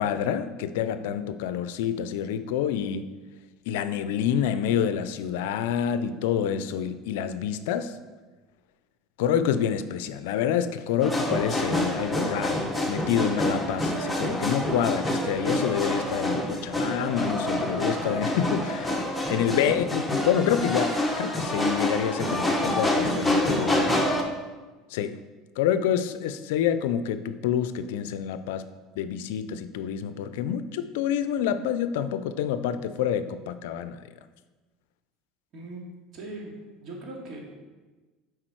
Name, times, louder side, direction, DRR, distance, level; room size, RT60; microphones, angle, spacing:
voice 1, 0.0-3.1 3.7-8.0 9.2-12.6 12.9-24.0 24.9-25.2 25.6-28.6 29.0-34.0, left 9 dB, 75° left, 12 dB, 0.4 m, -27 dB
sound 1, 11.0-24.2, left 1 dB, 5° left, 1.1 m, -27 dB
voice 2, 35.5-37.4, right 2 dB, 50° right, -1 dB, 2.2 m, -40 dB
7.5 x 4.8 x 4.6 m, 1.3 s
hypercardioid pair, 90°, 0 cm